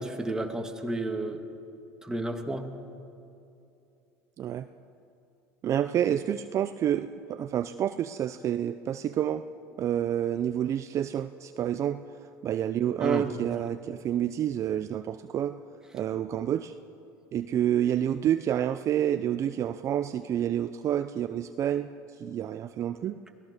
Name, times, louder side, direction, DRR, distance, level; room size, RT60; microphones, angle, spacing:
voice 1, 0.0-1.4 2.0-2.7 13.0-13.2, right 1 dB, 10° right, 4 dB, 2.1 m, -31 dB
voice 2, 4.4-4.7 5.6-9.4 9.8-12.0 12.4-15.6 15.9-16.7 17.3-21.9 22.2-23.2, right 10 dB, 40° right, 10 dB, 0.6 m, -28 dB
24.0 x 17.5 x 6.7 m, 2.7 s
supercardioid pair, 105°, 8 cm